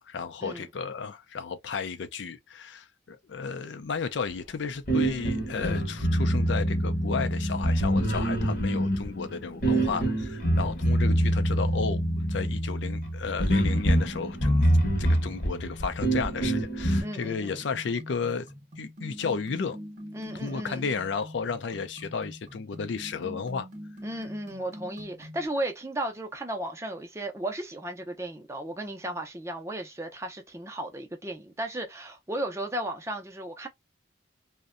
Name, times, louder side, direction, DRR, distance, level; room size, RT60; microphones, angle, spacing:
voice 1, 0.0-14.7 15.0-18.5 18.8-19.8 20.3-23.7, left 5 dB, 70° left, 0.4 m, -33 dB
sound 1, 4.9-17.0, right 1 dB, 45° left, 0.8 m, -25 dB
voice 2, 9.7-10.1 17.0-17.7 20.1-20.9 24.0-33.7, right 1 dB, 15° right, 0.4 m, -35 dB
sound 2, 17.0-25.5, equal, 40° right, 0.8 m, -44 dB
2.6 x 2.1 x 2.4 m
head